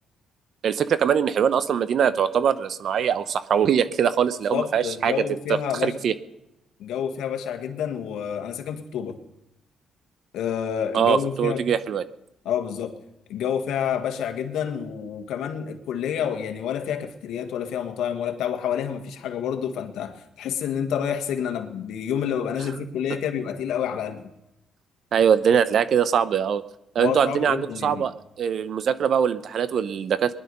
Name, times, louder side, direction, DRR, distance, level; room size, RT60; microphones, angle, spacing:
voice 1, 0.6-5.1 5.5-6.1 10.9-12.0 25.1-26.6 26.9-28.1 28.4-30.3, right 8 dB, 60° right, 14 dB, 0.8 m, -22 dB
voice 2, 4.5-6.0 6.8-9.2 10.3-11.6 12.5-12.9 13.3-24.3 27.0-28.0, left 8 dB, 85° left, 6 dB, 1.6 m, -28 dB
20.5 x 11.0 x 5.5 m, 0.91 s
cardioid pair, 90°, 0 cm